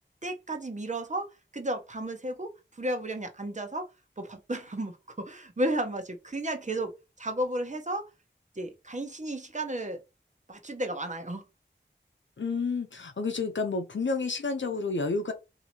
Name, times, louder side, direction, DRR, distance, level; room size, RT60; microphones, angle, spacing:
voice 1, 0.2-3.9 4.2-8.1 8.6-10.0 10.5-11.4, right 1 dB, 40° right, 1.0 m, -33 dB
voice 2, 12.4-15.3, left 4 dB, 80° left, 0.7 m, -30 dB
2.9 x 2.8 x 4.3 m
wide cardioid pair, 45°, 19 cm